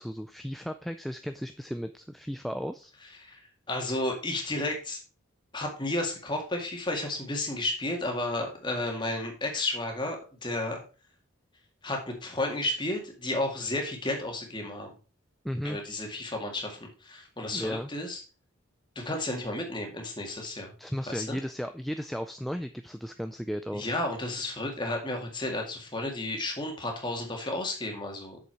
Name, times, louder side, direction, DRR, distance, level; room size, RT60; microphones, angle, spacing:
voice 1, 0.0-2.9 15.4-15.8 17.5-17.9 20.8-23.9, equal, ahead, 8 dB, 0.3 m, -35 dB
voice 2, 3.7-5.0 5.5-10.8 11.8-14.9 15.6-18.2 19.0-20.7 21.1-21.4 23.7-28.4, left 2 dB, 20° left, 2 dB, 2.0 m, -32 dB
7.8 x 6.8 x 4.6 m, 0.35 s
head